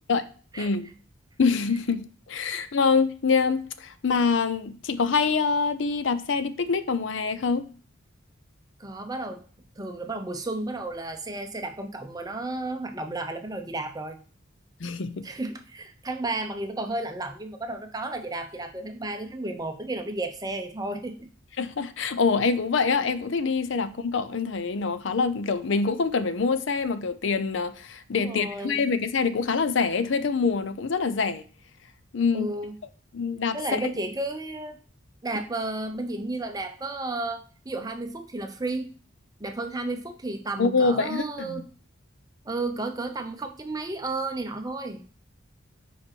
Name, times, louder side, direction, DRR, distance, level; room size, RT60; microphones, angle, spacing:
voice 1, 0.6-0.9 1.4-7.7 14.8-15.3 21.6-31.4 32.1-32.5 33.1-33.9 40.6-41.6, left 5 dB, 65° left, 0.5 m, -25 dB
voice 2, 8.8-9.4 9.8-14.2 15.2-21.3 28.2-28.8 32.3-32.8 33.5-34.8 35.2-38.9 39.4-41.6 42.4-45.0, right 2 dB, 20° right, 0.7 m, -32 dB
5.1 x 4.9 x 6.0 m
head